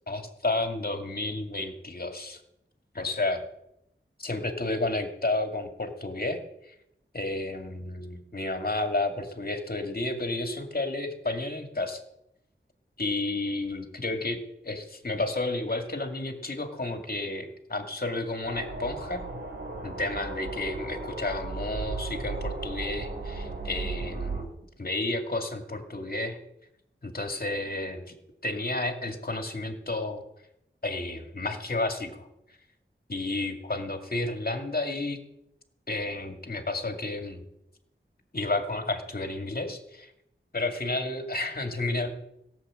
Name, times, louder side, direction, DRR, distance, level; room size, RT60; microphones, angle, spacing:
voice 1, 0.1-2.4 2.9-3.4 4.2-6.4 6.7-6.8 7.1-12.0 13.0-14.4 14.6-19.2 19.8-24.5 24.8-26.4 27.0-28.1 28.4-30.2 30.8-32.3 33.1-35.2 35.9-37.4 38.3-40.1 40.5-42.1, left 2 dB, 45° left, 5 dB, 2.2 m, -31 dB
sound 1, 18.4-24.4, right 3 dB, 55° right, 3.1 m, -35 dB
16.5 x 7.7 x 7.6 m, 0.81 s
wide cardioid pair, 50°, 21 cm